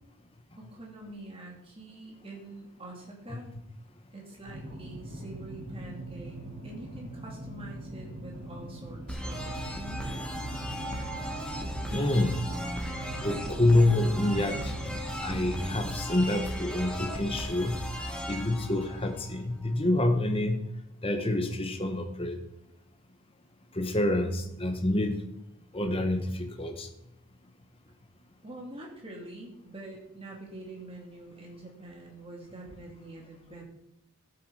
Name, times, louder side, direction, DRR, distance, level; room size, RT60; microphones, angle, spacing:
voice 1, 0.6-3.5 4.1-6.4 6.6-10.5 28.4-33.6, right 2 dB, 25° right, -1 dB, 2.8 m, -45 dB
sound 1, 4.4-15.9, right 1 dB, 55° right, 4.7 m, -42 dB
sound 2, 9.1-19.7, equal, 5° left, 1.3 m, -36 dB
voice 2, 11.9-12.3 13.2-17.8 18.3-20.6 21.0-22.4 23.7-25.2 25.7-26.9, left 1 dB, 25° left, 5 dB, 1.2 m, -27 dB
13.0 x 8.0 x 4.9 m, 0.81 s
head